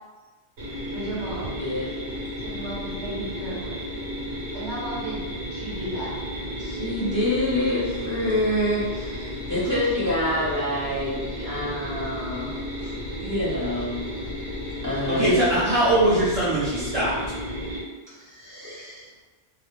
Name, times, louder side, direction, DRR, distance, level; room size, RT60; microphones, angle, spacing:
sound 1, 0.6-17.8, equal, 85° right, 1.2 m, -33 dB
voice 1, 0.9-1.6 2.4-3.8 4.5-6.1, right 1 dB, 65° right, -6 dB, 1.0 m, -34 dB
voice 2, 1.6-1.9 6.6-12.6 12.8-12.9 13.2-14.0 14.8-15.4 18.1-19.1, left 1 dB, 20° left, -11 dB, 0.7 m, -27 dB
voice 3, 15.1-17.2, right 1 dB, 40° right, -11 dB, 0.6 m, -21 dB
2.3 x 2.1 x 3.0 m, 1.3 s
omnidirectional pair, 1.2 m